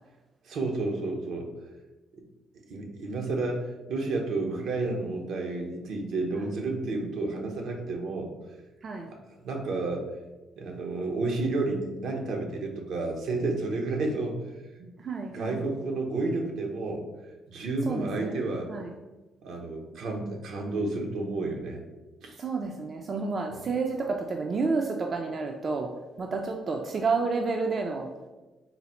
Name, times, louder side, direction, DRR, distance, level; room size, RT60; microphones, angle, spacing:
voice 1, 0.4-1.5 2.1-2.2 2.7-8.3 9.4-10.1 10.6-14.5 15.3-17.0 17.5-18.7 19.4-21.8 22.2-22.4 23.5-23.6, right 2 dB, 75° right, 2 dB, 0.7 m, -31 dB
voice 2, 15.0-15.7 17.8-18.4 18.7-18.9 22.4-25.9 26.2-28.1, right 4 dB, 45° right, 2 dB, 0.4 m, -30 dB
4.0 x 2.0 x 4.2 m, 1.1 s
cardioid pair, 90°, 0 cm